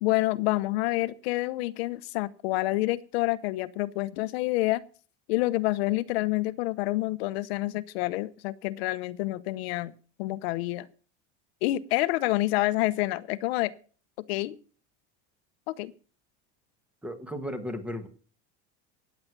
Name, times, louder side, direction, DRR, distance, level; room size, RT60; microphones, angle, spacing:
voice 1, 0.0-4.8 5.3-9.9 10.2-10.9 11.6-13.7 14.3-14.6 15.7-15.9, left 18 dB, 75° left, 15 dB, 0.9 m, -28 dB
voice 2, 17.0-18.1, equal, 5° right, 9 dB, 1.4 m, -35 dB
16.0 x 9.6 x 6.0 m, 0.40 s
cardioid pair, 175°, 31 cm